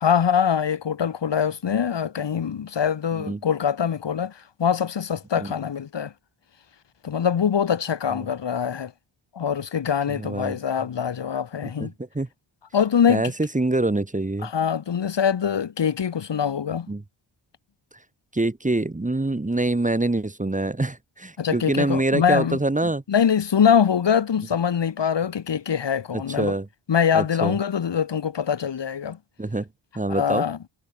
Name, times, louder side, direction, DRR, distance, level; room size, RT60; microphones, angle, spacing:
voice 1, 0.0-6.1 7.0-8.9 9.3-11.9 12.7-13.3 14.4-16.9 21.4-22.6 23.1-26.6 26.9-29.2 30.1-30.6, left 7 dB, 60° left, 2.6 m, -23 dB
voice 2, 10.1-10.6 11.8-12.3 13.1-14.5 16.9-17.0 18.3-23.0 26.4-26.7 27.1-27.6 29.4-29.7 30.0-30.4, right 2 dB, 15° right, 2.3 m, -25 dB
wide cardioid pair, 105°, 48 cm